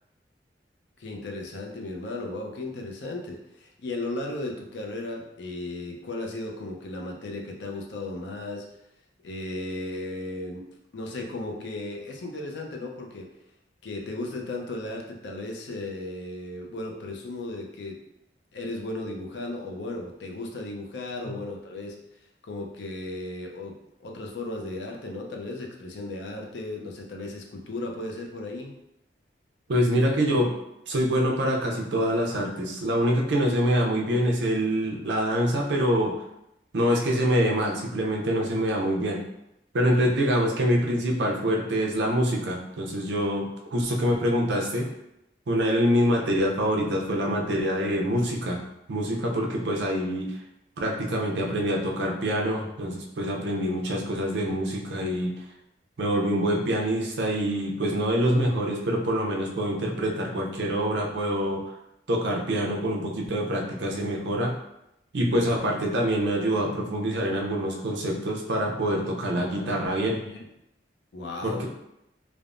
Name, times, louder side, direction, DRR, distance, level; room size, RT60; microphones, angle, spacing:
voice 1, 1.0-8.7 9.2-10.7 10.9-13.3 13.8-18.0 18.5-22.0 22.4-23.8 24.0-28.7 40.0-40.1 65.3-65.7 68.8-69.0 69.5-69.8 70.2-70.5 71.1-71.7, left 2 dB, 80° left, 1 dB, 0.5 m, -35 dB
voice 2, 29.7-30.5 30.9-36.1 36.7-39.2 39.7-44.9 45.5-48.6 48.9-50.3 50.8-55.3 56.0-61.6 62.1-64.5 65.1-70.2 71.4-71.7, equal, 80° right, 0 dB, 0.5 m, -25 dB
3.3 x 2.0 x 2.4 m, 0.84 s
head